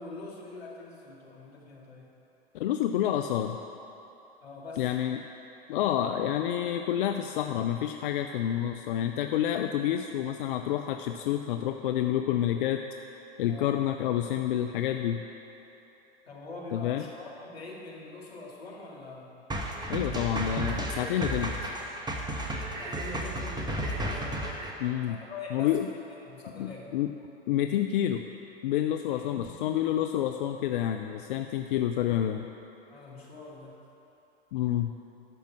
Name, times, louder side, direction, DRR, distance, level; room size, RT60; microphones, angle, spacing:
voice 1, 0.0-2.1 4.4-4.9 13.5-13.8 16.3-19.4 19.9-20.3 22.8-24.4 25.1-26.9 29.1-29.7 30.1-30.3 32.9-33.8, left 2 dB, 80° left, -3 dB, 2.2 m, -44 dB
voice 2, 2.5-3.6 4.8-5.2 5.7-12.9 13.4-15.2 16.7-17.0 19.9-21.5 24.8-25.2 25.5-25.9 26.5-27.1 27.5-28.3 28.6-32.5 34.5-34.9, left 11 dB, 60° left, 6 dB, 0.5 m, -28 dB
sound 1, 19.5-24.7, right 1 dB, 15° right, 1.2 m, -33 dB
12.0 x 5.2 x 7.4 m, 3.0 s
figure-of-eight pair, 95°, 30 cm